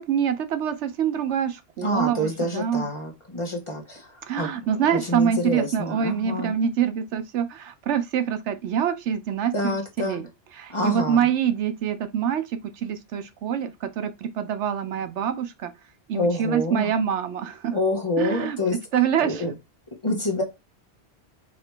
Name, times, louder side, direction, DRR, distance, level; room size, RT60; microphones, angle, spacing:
voice 1, 0.0-2.9 4.3-10.3 10.6-12.4 12.8-15.7 16.1-17.8 18.2-18.6 18.9-19.4, right 8 dB, 85° right, 1.0 m, -25 dB
voice 2, 1.8-6.6 9.5-10.2 10.7-11.3 16.1-16.9 17.7-18.8 19.2-19.5 20.0-20.4, left 1 dB, 25° left, 1.1 m, -27 dB
4.9 x 2.9 x 3.4 m
omnidirectional pair, 1.2 m